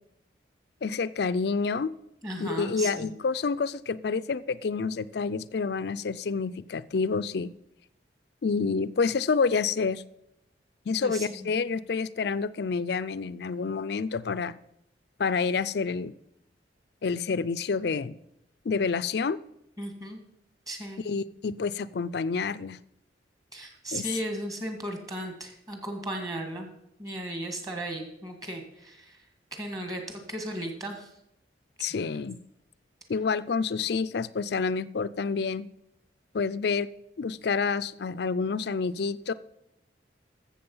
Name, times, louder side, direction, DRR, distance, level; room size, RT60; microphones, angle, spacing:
voice 1, 0.8-1.9 2.4-7.5 8.4-10.0 10.9-14.6 15.2-16.1 17.0-18.1 18.7-19.4 21.0-22.8 23.9-24.1 31.8-32.4 33.1-35.7 36.3-36.9 37.2-39.3, left 5 dB, 60° left, 0.4 m, -28 dB
voice 2, 2.2-3.1 11.0-11.5 19.8-20.2 20.7-21.0 23.5-26.7 27.0-29.2 29.5-31.1, right 1 dB, 20° right, 1.8 m, -36 dB
13.5 x 7.4 x 5.5 m
head